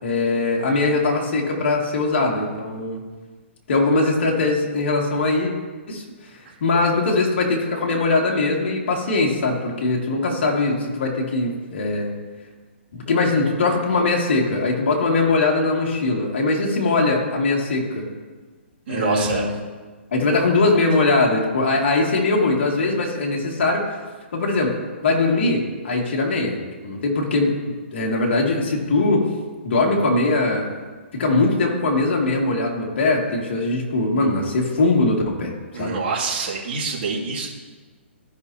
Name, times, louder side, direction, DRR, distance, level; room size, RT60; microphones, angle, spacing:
voice 1, 0.0-3.0 3.7-5.5 5.9-6.0 6.6-12.1 12.9-18.1 18.9-19.5 20.1-23.8 24.3-24.7 25.0-27.6 27.9-29.3 29.6-30.7 31.1-36.0, left 3 dB, 60° left, -1 dB, 2.2 m, -21 dB
voice 2, 18.9-19.5 35.7-37.5, right 4 dB, 50° right, -5 dB, 2.4 m, -26 dB
14.5 x 5.9 x 2.8 m, 1.4 s
hypercardioid pair, 150°, 7 cm